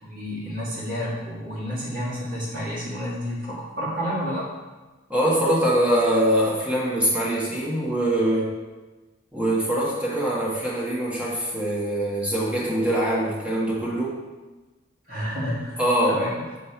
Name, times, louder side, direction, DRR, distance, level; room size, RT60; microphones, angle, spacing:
voice 1, 0.0-4.6 15.1-15.8 16.1-16.4, equal, 45° right, -6 dB, 1.8 m, -30 dB
voice 2, 5.1-8.5 9.3-14.2 15.8-16.4, right 1 dB, 5° right, -6 dB, 1.2 m, -23 dB
6.8 x 3.3 x 4.4 m, 1.2 s
head